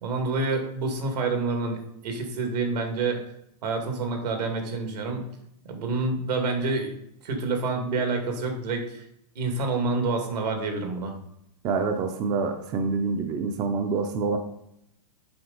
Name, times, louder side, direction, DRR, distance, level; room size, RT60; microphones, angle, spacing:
voice 1, 0.0-3.2 3.6-5.3 5.6-6.9 7.2-9.0 9.4-11.1, right 3 dB, 80° right, 3 dB, 2.0 m, -28 dB
voice 2, 11.6-14.4, right 4 dB, 20° right, 6 dB, 0.5 m, -26 dB
7.8 x 5.2 x 3.9 m, 0.78 s
supercardioid pair, 155°, 20 cm